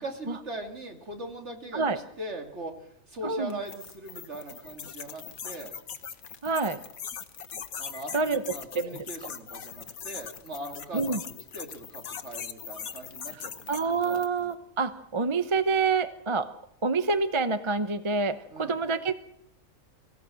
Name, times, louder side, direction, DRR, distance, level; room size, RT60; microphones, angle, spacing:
voice 1, 0.0-1.9 2.2-2.8 3.1-5.8 7.8-11.3 11.5-14.2 18.5-18.8, right 2 dB, 55° right, 4 dB, 2.9 m, -40 dB
voice 2, 3.2-3.6 6.4-6.8 8.1-8.4 8.7-9.0 10.9-11.2 13.7-16.5 16.8-19.1, right 4 dB, 25° right, 11 dB, 0.8 m, -27 dB
sound 1, 3.5-14.4, left 7 dB, 90° left, 1.6 m, -41 dB
23.5 x 16.0 x 7.7 m, 0.73 s
omnidirectional pair, 1.4 m